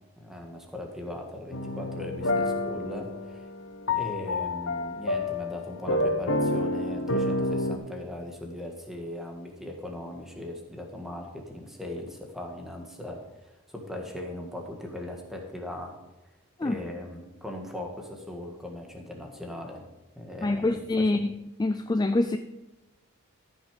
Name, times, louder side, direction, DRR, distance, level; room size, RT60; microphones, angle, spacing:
voice 1, 0.2-3.4 3.9-15.9 16.6-19.8 20.1-21.0, left 1 dB, ahead, 1 dB, 1.6 m, -39 dB
sound 1, 1.5-7.8, left 2 dB, 70° left, 1.0 m, -29 dB
voice 2, 20.4-21.3 21.6-22.4, left 2 dB, 20° left, 9 dB, 0.3 m, -25 dB
14.0 x 6.2 x 5.1 m, 1.1 s
head